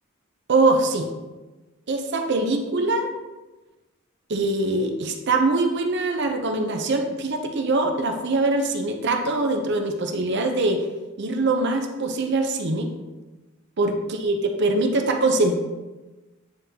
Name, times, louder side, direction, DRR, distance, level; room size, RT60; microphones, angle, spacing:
voice 1, 0.5-1.1 1.9-3.1 4.3-10.8 11.2-12.9 13.8-15.6, right 2 dB, 55° right, 4 dB, 0.6 m, -23 dB
8.8 x 3.8 x 2.8 m, 1.1 s
head